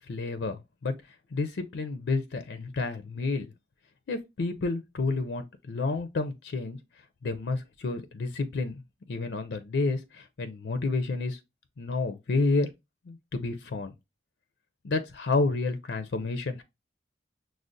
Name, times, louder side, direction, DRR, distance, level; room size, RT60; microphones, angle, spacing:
voice 1, 0.1-0.9 1.3-3.5 4.1-6.8 7.2-8.8 9.1-11.4 11.8-12.7 13.1-13.9 14.8-16.6, left 3 dB, 75° left, 0.5 m, -30 dB
6.1 x 2.0 x 2.5 m
head